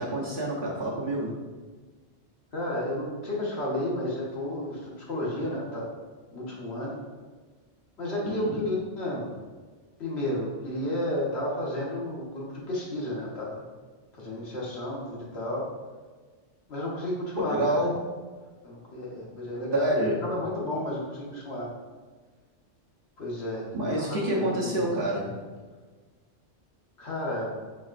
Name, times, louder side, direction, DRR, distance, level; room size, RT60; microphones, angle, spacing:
voice 1, 0.0-1.4 8.2-8.5 17.4-18.0 19.7-20.2 23.7-25.4, right 1 dB, 50° right, -5 dB, 1.0 m, -27 dB
voice 2, 2.5-5.9 6.3-7.0 8.0-9.3 10.0-13.6 14.1-15.7 16.7-17.6 18.6-19.9 20.2-21.7 23.2-25.1 27.0-27.5, left 1 dB, 65° left, -5 dB, 1.4 m, -32 dB
4.8 x 4.0 x 2.4 m, 1.4 s
omnidirectional pair, 1.2 m